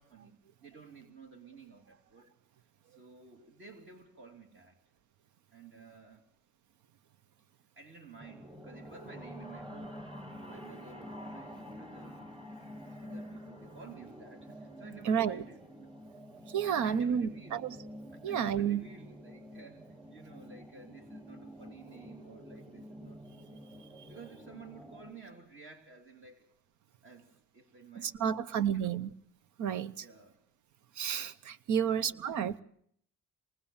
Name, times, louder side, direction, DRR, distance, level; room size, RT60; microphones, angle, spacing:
voice 1, 0.0-2.3 2.9-4.8 5.5-6.2 7.7-10.1 10.5-12.3 12.9-15.9 16.6-17.6 18.1-23.6 24.1-26.5 27.0-29.0 30.0-30.4 31.8-32.6, right 5 dB, 40° right, 3.2 m, -53 dB
sound 1, 8.2-25.1, equal, 15° right, 4.6 m, -48 dB
voice 2, 15.0-15.4 16.5-17.8 18.2-18.9 28.0-29.1 29.6-30.1 31.0-32.6, right 8 dB, 85° right, 1.0 m, -31 dB
26.0 x 20.0 x 7.2 m
cardioid pair, 125°, 29 cm